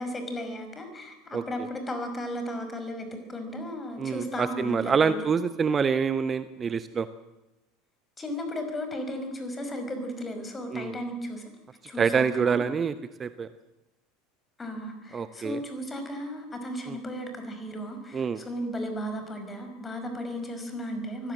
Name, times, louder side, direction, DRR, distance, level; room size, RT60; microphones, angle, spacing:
voice 1, 0.0-5.2 8.2-11.4 11.9-12.7 14.6-21.3, equal, 20° left, 6 dB, 5.7 m, -35 dB
voice 2, 4.0-7.1 10.7-10.9 12.0-12.9 13.2-13.5 15.1-15.6 16.9-17.0 18.1-18.4, right 6 dB, 25° right, 13 dB, 0.9 m, -26 dB
24.0 x 16.5 x 7.8 m, 1.0 s
figure-of-eight pair, 75°, 0 cm